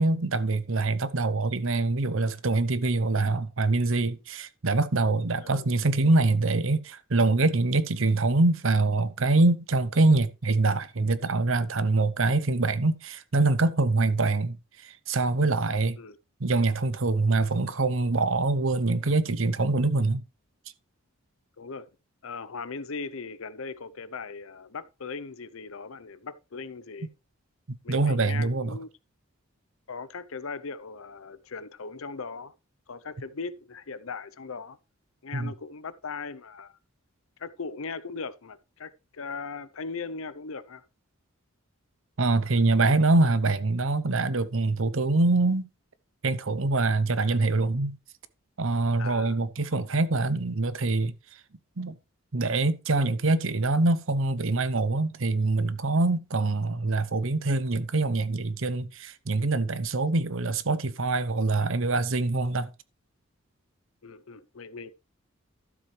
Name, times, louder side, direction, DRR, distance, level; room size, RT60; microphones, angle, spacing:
voice 1, 0.0-14.6 14.8-16.0 16.4-20.2 27.7-28.8 35.3-35.5 42.2-45.7 46.2-48.0 48.6-51.1 51.8-51.9 52.3-62.7, right 3 dB, 65° right, 0.8 m, -24 dB
voice 2, 21.6-21.9 22.2-27.1 27.8-28.9 29.9-32.5 32.9-34.8 35.2-36.8 37.4-40.8 49.0-49.4 64.0-64.9, left 4 dB, 70° left, 0.7 m, -39 dB
12.5 x 7.2 x 3.3 m
head